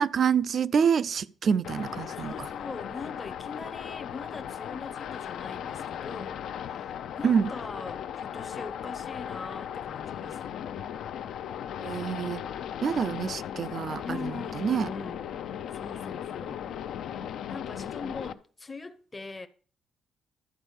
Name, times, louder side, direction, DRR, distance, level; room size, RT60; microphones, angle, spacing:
voice 1, 0.0-2.5 7.2-7.5 11.8-12.4 12.8-14.9, right 7 dB, 45° right, 0.4 m, -27 dB
sound 1, 1.6-18.3, left 9 dB, 70° left, 0.6 m, -37 dB
voice 2, 2.1-10.4 13.0-13.2 14.0-15.2 15.7-16.7 17.5-19.5, left 3 dB, 15° left, 0.7 m, -42 dB
12.0 x 4.5 x 8.2 m
cardioid pair, 150°, 0 cm